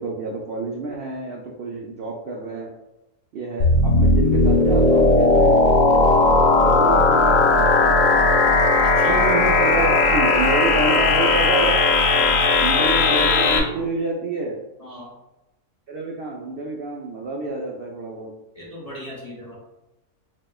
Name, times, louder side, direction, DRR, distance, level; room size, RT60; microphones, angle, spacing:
voice 1, 0.0-2.7 3.3-5.6 6.6-8.5 9.0-11.8 12.6-14.6 15.9-18.3, right 2 dB, 70° right, -1 dB, 0.5 m, -28 dB
sound 1, 3.6-13.6, left 3 dB, 70° left, 1.0 m, -17 dB
voice 2, 8.8-9.2 12.1-12.5 14.8-15.1 18.5-19.5, equal, 35° left, -6 dB, 0.6 m, -37 dB
6.2 x 2.2 x 2.3 m, 0.95 s
omnidirectional pair, 1.5 m